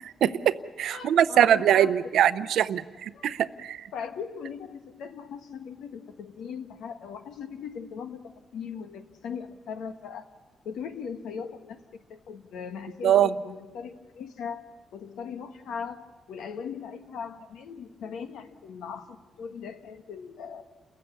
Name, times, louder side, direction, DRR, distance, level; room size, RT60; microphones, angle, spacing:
voice 1, 0.2-3.8 13.0-13.3, right 10 dB, 80° right, 15 dB, 0.7 m, -22 dB
voice 2, 0.9-1.9 3.1-3.3 3.9-10.3 10.6-20.7, left 6 dB, 90° left, 8 dB, 1.4 m, -39 dB
29.5 x 15.0 x 8.3 m, 1.3 s
cardioid pair, 110°, 0 cm